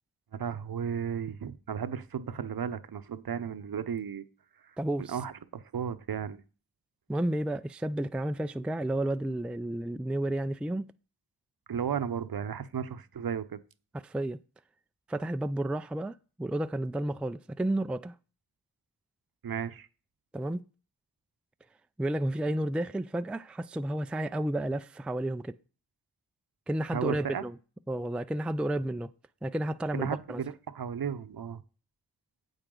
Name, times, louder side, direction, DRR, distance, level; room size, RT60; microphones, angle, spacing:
voice 1, 0.3-4.2 5.1-6.4 11.7-13.6 19.4-19.9 26.9-27.5 29.9-31.6, right 7 dB, 60° right, 0.8 m, -34 dB
voice 2, 4.8-5.2 7.1-10.8 14.0-14.4 15.1-18.1 20.3-20.6 22.0-25.6 26.7-27.6 27.9-29.1 29.4-30.4, right 1 dB, 5° right, 0.4 m, -31 dB
8.9 x 8.0 x 3.8 m
cardioid pair, 50°, 41 cm